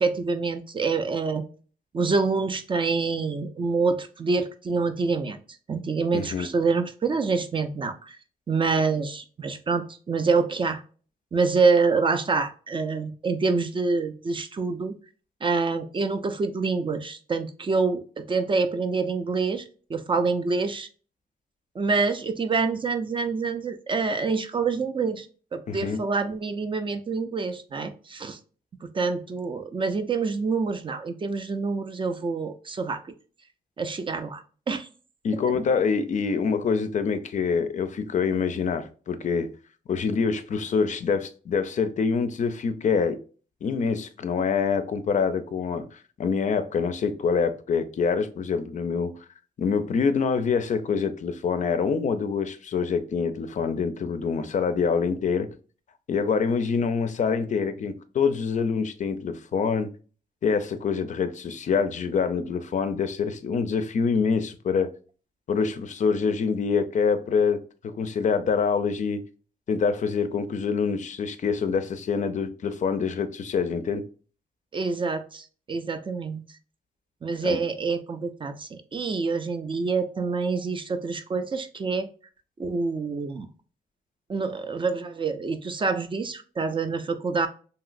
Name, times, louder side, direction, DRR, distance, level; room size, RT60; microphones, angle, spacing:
voice 1, 0.0-1.4 1.9-5.4 5.7-8.2 8.5-10.8 11.3-14.9 15.4-19.6 19.9-20.9 21.8-25.3 25.5-28.4 28.8-33.1 33.8-34.9 35.3-35.4 74.7-76.4 77.2-82.1 82.6-83.5 84.3-87.5, right 4 dB, 30° right, 0.3 m, -26 dB
voice 2, 6.1-6.5 25.7-26.0 35.2-39.5 39.9-43.2 43.6-49.1 49.6-55.5 56.1-59.9 60.4-64.9 65.5-69.2 69.7-74.0 77.4-77.6, left 5 dB, 45° left, 0.4 m, -25 dB
2.9 x 2.7 x 2.4 m
cardioid pair, 105°, 17 cm